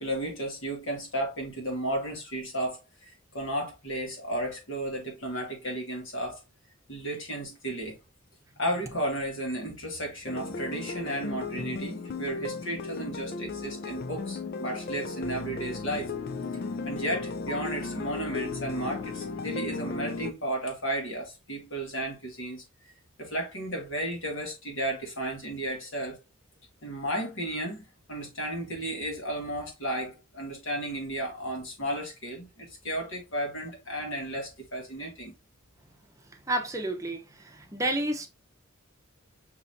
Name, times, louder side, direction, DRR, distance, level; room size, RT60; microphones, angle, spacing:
voice 1, 0.0-6.4 6.9-7.9 8.6-16.1 16.9-22.6 23.2-26.2 26.8-35.3, right 1 dB, 65° left, 1.9 m, -33 dB
sound 1, 10.3-20.3, left 4 dB, 45° left, 0.4 m, -35 dB
voice 2, 36.5-37.2 37.7-38.3, right 1 dB, 15° right, 0.7 m, -29 dB
5.5 x 3.1 x 2.6 m
head